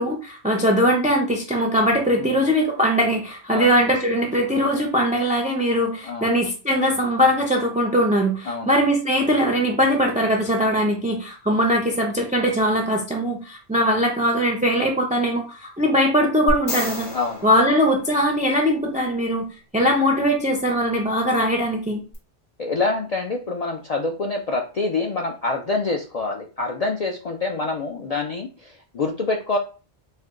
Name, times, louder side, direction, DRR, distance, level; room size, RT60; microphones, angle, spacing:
voice 1, 0.0-17.1 17.4-19.4 19.7-22.0, equal, 10° right, 1 dB, 0.4 m, -21 dB
sound 1, 16.5-18.7 22.1-22.2, left 1 dB, 85° left, 1.8 m, -31 dB
voice 2, 22.6-29.6, left 3 dB, 55° left, 1 dB, 0.4 m, -26 dB
4.3 x 2.2 x 3.6 m, 0.35 s
omnidirectional pair, 1.1 m